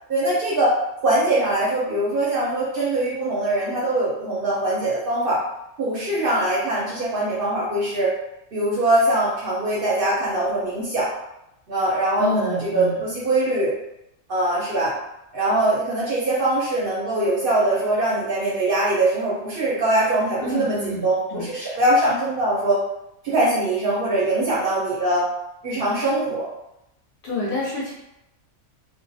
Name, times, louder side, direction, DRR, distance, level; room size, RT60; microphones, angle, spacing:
voice 1, 0.1-0.7 1.0-5.4 5.8-8.1 8.5-11.1 11.7-13.7 14.3-14.9 15.3-22.8 23.2-25.3 25.6-26.5, right 1 dB, 55° right, -6 dB, 0.7 m, -22 dB
voice 2, 12.2-13.0 20.4-21.8 27.2-27.9, left 2 dB, 60° left, -6 dB, 0.7 m, -28 dB
2.3 x 2.1 x 2.6 m, 0.87 s
omnidirectional pair, 1.3 m